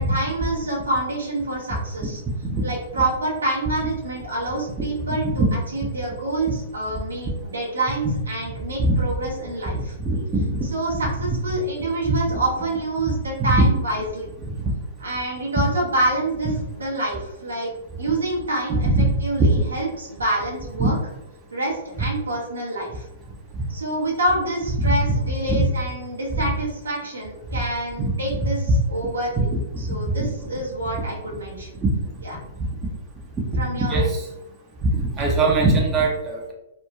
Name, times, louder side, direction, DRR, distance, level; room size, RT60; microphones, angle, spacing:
voice 1, 0.0-2.2 2.6-5.4 5.7-9.9 10.7-14.3 15.0-17.7 18.0-18.9 19.2-21.0 21.5-23.0 23.7-28.6 28.9-29.5 29.8-31.8 32.2-32.4 33.6-34.1, right 1 dB, 85° right, -2 dB, 0.8 m, -27 dB
voice 2, 9.7-10.5 10.9-11.0 11.3-11.4 12.0-12.1 13.5-13.6 14.5-14.6 16.4-16.5 18.7-19.1 20.8-20.9 23.5-23.6 24.8-24.9 25.5-25.6 26.3-26.4 28.0-28.4 28.7-28.8 29.4-29.6 29.9-30.3 30.9-31.0 31.8-31.9 33.5-34.3 34.9-36.5, right 2 dB, 20° right, -1 dB, 0.6 m, -22 dB
3.0 x 2.1 x 2.3 m, 0.92 s
hypercardioid pair, 115°, 0 cm